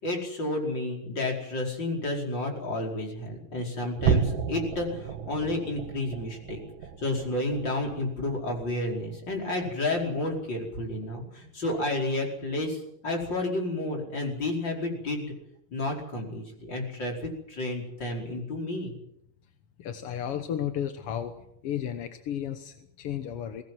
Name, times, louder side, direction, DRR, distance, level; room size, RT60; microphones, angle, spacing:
voice 1, 0.0-6.6 7.0-15.3 15.7-18.9, left 2 dB, 35° left, 1 dB, 5.5 m, -31 dB
sound 1, 4.0-10.6 11.0-11.3 11.7-11.8 12.4-12.5, right 7 dB, 80° right, 3.3 m, -33 dB
voice 2, 19.8-21.3 21.6-23.6, left 9 dB, 60° left, 8 dB, 1.7 m, -33 dB
22.0 x 19.0 x 7.6 m, 0.76 s
omnidirectional pair, 3.8 m